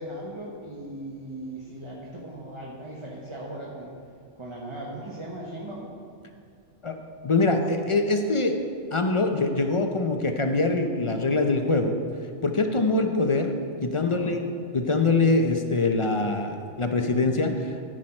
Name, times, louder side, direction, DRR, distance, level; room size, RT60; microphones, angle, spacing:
voice 1, 0.0-3.9 4.4-5.9 13.9-14.4, right 1 dB, 25° right, -3 dB, 1.0 m, -38 dB
voice 2, 7.2-8.5 8.9-12.0 12.4-13.6 13.8-14.4 14.7-17.7, left 3 dB, 35° left, 5 dB, 0.5 m, -23 dB
13.5 x 6.4 x 4.4 m, 2.3 s
omnidirectional pair, 1.2 m